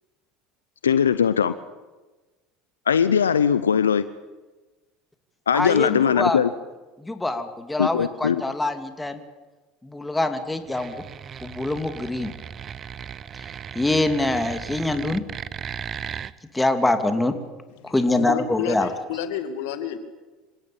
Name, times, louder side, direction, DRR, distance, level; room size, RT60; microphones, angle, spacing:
voice 1, 0.8-1.5 2.9-4.0 5.5-6.5 7.8-8.4, left 7 dB, 90° left, 14 dB, 0.7 m, -20 dB
voice 2, 5.5-6.4 7.0-9.2 9.8-10.9 11.4-12.3 13.3-13.4 13.7-15.2 16.5-17.3 17.8-18.9, left 2 dB, 10° left, 8 dB, 2.8 m, -24 dB
sound 1, 10.7-16.3, right 8 dB, 40° right, 0.9 m, -36 dB
voice 3, 17.8-20.0, left 8 dB, 70° left, 9 dB, 2.4 m, -30 dB
26.5 x 17.0 x 8.7 m, 1.2 s
hypercardioid pair, 75°, 0 cm